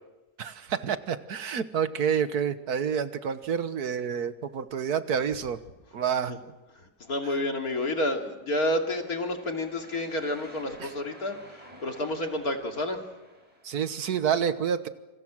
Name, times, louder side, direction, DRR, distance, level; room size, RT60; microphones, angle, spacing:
voice 1, 0.4-5.6 5.9-6.4 10.8-10.9 13.6-14.9, right 7 dB, 80° right, 11 dB, 1.7 m, -28 dB
voice 2, 6.7-13.0, left 1 dB, 70° left, 3 dB, 3.1 m, -30 dB
sound 1, 8.6-14.0, right 1 dB, 25° right, 4.2 m, -52 dB
28.0 x 26.5 x 6.4 m, 1.1 s
omnidirectional pair, 1.6 m